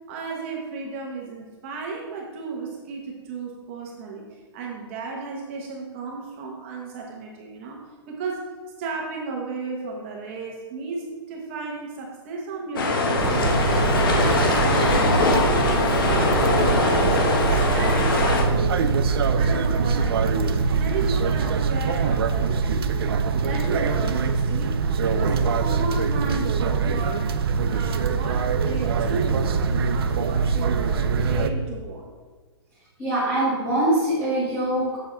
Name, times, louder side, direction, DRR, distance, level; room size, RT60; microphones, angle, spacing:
voice 1, 0.1-4.2 4.5-8.4 8.8-13.7 14.1-18.9 19.4-20.5 20.8-22.6 23.3-27.3 27.6-32.1, right 4 dB, 25° right, -1 dB, 1.0 m, -34 dB
sound 1, 12.8-18.4, left 3 dB, 50° left, 1.3 m, -21 dB
sound 2, 13.2-31.5, right 5 dB, 60° right, 0.6 m, -23 dB
voice 2, 33.0-35.0, right 1 dB, 10° left, -11 dB, 1.7 m, -23 dB
7.1 x 7.0 x 3.8 m, 1.4 s
hypercardioid pair, 175°, 14 cm